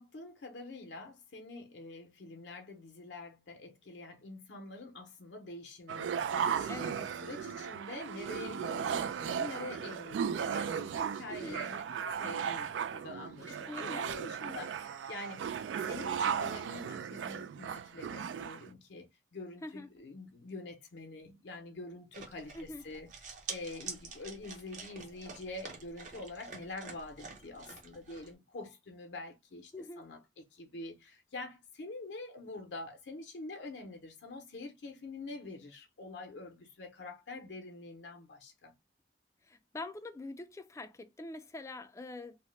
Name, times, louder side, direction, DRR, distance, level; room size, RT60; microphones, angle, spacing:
voice 1, 0.0-11.9 12.2-38.7, left 2 dB, 75° left, 0.6 m, -46 dB
sound 1, 5.9-18.7, right 7 dB, 90° right, 0.3 m, -36 dB
voice 2, 11.3-11.6 13.5-14.1 19.6-19.9 22.5-22.8 29.7-30.0 39.5-42.4, left 2 dB, 15° left, 0.3 m, -44 dB
sound 2, 22.1-28.3, right 5 dB, 45° right, 0.7 m, -47 dB
2.8 x 2.0 x 3.1 m
head